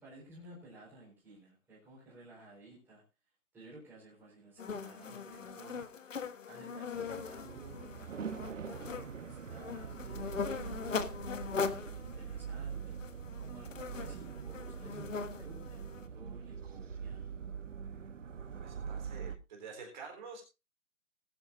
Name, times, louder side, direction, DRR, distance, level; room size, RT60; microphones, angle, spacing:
voice 1, 0.0-3.0 3.5-5.8 6.5-17.3, right 2 dB, 5° right, -7 dB, 4.1 m, -55 dB
sound 1, 4.6-16.1, left 5 dB, 50° left, 1.4 m, -41 dB
sound 2, 6.9-19.4, right 7 dB, 50° right, 1.1 m, -43 dB
voice 2, 18.6-20.4, right 5 dB, 30° right, 1 dB, 3.9 m, -48 dB
20.0 x 9.7 x 2.6 m, 0.28 s
figure-of-eight pair, 160°, 47 cm